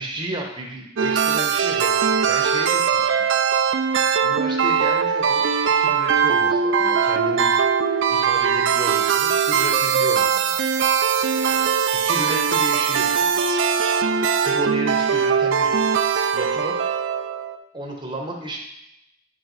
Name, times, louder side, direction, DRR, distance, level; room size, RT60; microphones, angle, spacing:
voice 1, 0.0-1.9 2.3-3.9 4.2-7.5 7.9-10.5 11.5-13.4 14.4-15.8 16.3-16.8 17.7-18.6, right 1 dB, 25° right, 1 dB, 0.9 m, -32 dB
sound 1, 1.0-17.6, right 6 dB, 65° right, 0.4 m, -20 dB
8.6 x 4.6 x 4.0 m, 0.81 s
head